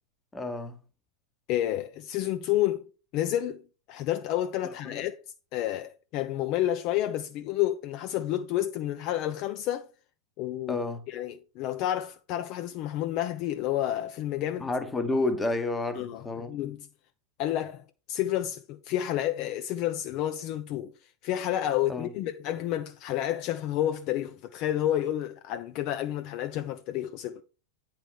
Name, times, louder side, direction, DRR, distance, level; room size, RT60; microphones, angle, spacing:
voice 1, 0.3-0.8 4.6-5.0 10.7-11.0 14.6-16.5 21.9-22.1, left 2 dB, 10° left, 1.2 m, -30 dB
voice 2, 1.5-3.6 3.9-5.2 5.5-9.9 10.4-10.8 11.1-14.7 15.9-16.8 17.4-27.4, left 12 dB, 40° left, 0.5 m, -30 dB
8.9 x 4.6 x 4.5 m
figure-of-eight pair, 90°, 0 cm